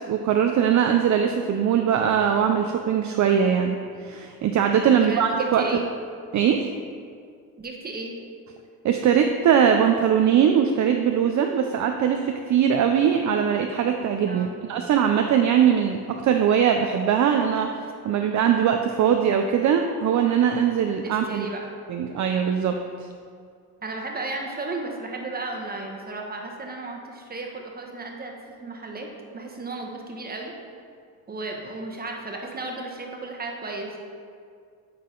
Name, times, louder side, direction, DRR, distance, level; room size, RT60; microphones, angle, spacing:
voice 1, 0.1-5.8 6.3-6.7 8.8-17.7 18.0-21.5 21.9-23.1, right 8 dB, 50° right, 4 dB, 0.5 m, -21 dB
voice 2, 4.9-5.9 7.6-8.1 14.3-14.6 21.0-21.6 23.8-29.1 29.3-30.5 31.3-34.0, right 2 dB, 25° right, 1 dB, 1.0 m, -34 dB
9.5 x 3.9 x 3.8 m, 2.2 s
cardioid pair, 95°, 38 cm